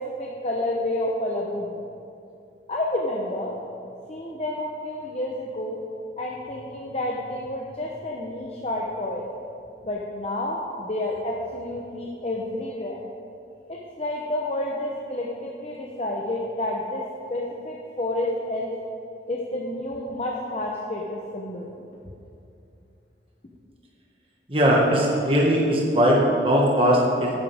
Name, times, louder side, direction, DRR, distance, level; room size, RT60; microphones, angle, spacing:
voice 1, 0.0-1.8 2.7-3.5 4.1-5.8 6.2-9.2 9.8-13.0 13.7-17.0 17.3-18.7 19.3-21.7, left 1 dB, 35° left, -2 dB, 0.9 m, -29 dB
voice 2, 24.5-27.3, equal, 30° right, -2 dB, 1.8 m, -19 dB
12.0 x 10.5 x 3.6 m, 2.7 s
head